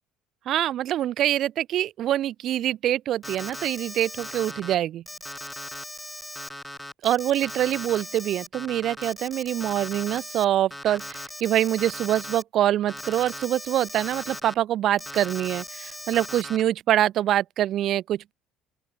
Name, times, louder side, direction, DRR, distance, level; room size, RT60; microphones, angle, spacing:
voice 1, 0.5-5.0 7.0-18.3, right 12 dB, 60° right, 0.4 m, -25 dB
Alarm, 3.2-4.7 5.1-10.4 10.7-12.4 12.9-14.5 15.0-16.6, left 1 dB, 5° left, 0.5 m, -38 dB
open air
hypercardioid pair, 70°, 0 cm